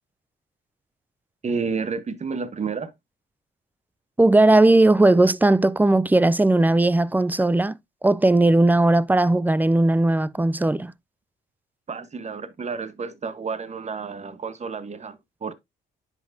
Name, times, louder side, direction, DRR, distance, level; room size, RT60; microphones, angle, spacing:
voice 1, 1.4-2.9 11.9-15.5, right 5 dB, 35° right, 1.1 m, -30 dB
voice 2, 4.2-7.8 8.0-10.9, right 2 dB, 10° right, 0.4 m, -18 dB
10.0 x 6.0 x 2.6 m
cardioid pair, 90°, 20 cm